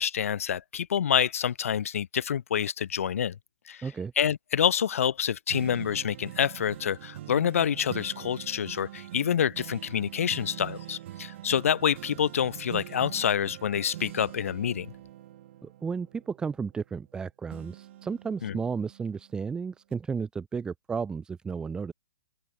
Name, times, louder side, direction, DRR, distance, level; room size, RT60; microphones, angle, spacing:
voice 1, 0.0-3.4 3.7-3.8 4.2-14.9 18.4-18.6, left 8 dB, 60° left, 1.7 m, -27 dB
voice 2, 3.8-4.1 15.6-21.9, right 5 dB, 10° right, 0.6 m, -33 dB
sound 1, 5.5-17.1 17.5-19.4 19.9-20.0, right 13 dB, 50° right, 4.8 m, -44 dB
open air
figure-of-eight pair, 125°, 8 cm